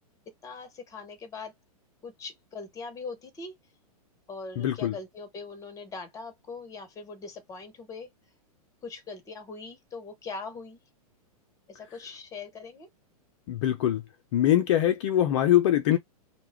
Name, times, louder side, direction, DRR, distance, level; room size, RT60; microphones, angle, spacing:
voice 1, 0.4-1.5 2.0-3.5 4.3-8.1 8.8-10.8 11.7-12.9, left 4 dB, 15° left, 0.8 m, -41 dB
voice 2, 4.6-4.9 13.5-14.0 14.3-16.0, left 12 dB, 50° left, 0.5 m, -23 dB
2.3 x 2.1 x 3.3 m
hypercardioid pair, 115°, 19 cm